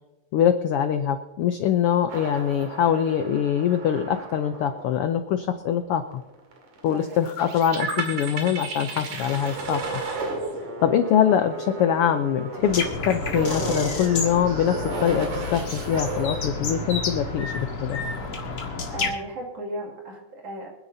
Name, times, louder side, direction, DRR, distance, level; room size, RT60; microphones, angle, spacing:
voice 1, 0.3-6.2 6.8-10.0 10.8-18.0, left 9 dB, 85° left, 9 dB, 1.2 m, -23 dB
sound 1, 2.1-18.4, right 3 dB, 75° right, 3.5 m, -34 dB
voice 2, 6.9-7.2 18.9-20.7, right 1 dB, 55° right, -1 dB, 3.5 m, -35 dB
sound 2, 12.6-19.1, left 3 dB, 50° left, 2.5 m, -30 dB
26.5 x 10.0 x 2.7 m, 1.1 s
omnidirectional pair, 3.4 m